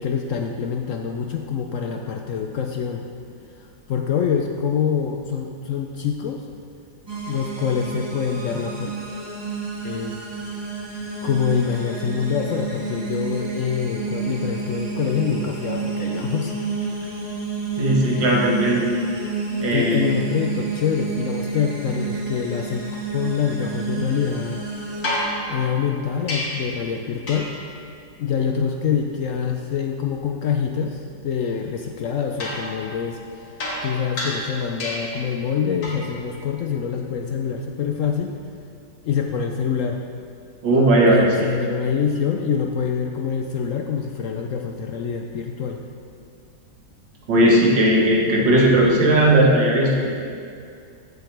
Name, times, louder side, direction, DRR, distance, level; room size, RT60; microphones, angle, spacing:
voice 1, 0.0-3.1 3.6-6.5 7.2-9.0 9.8-10.2 11.2-16.5 16.8-17.0 19.7-22.9 23.1-24.6 25.5-27.5 28.2-38.3 39.0-40.0 41.1-45.8, left 7 dB, 80° left, 3 dB, 0.7 m, -25 dB
sound 1, 7.1-25.2, right 4 dB, 15° right, 1.3 m, -30 dB
voice 2, 17.8-18.9 19.6-20.1 40.6-41.5 47.3-50.1, right 1 dB, 80° right, -3 dB, 2.2 m, -17 dB
sound 2, 25.0-26.8 27.3-27.7 32.4-35.3 35.8-36.2 38.2-38.3, left 1 dB, 55° left, 2.0 m, -30 dB
14.5 x 6.9 x 3.3 m, 2.3 s
omnidirectional pair, 1.9 m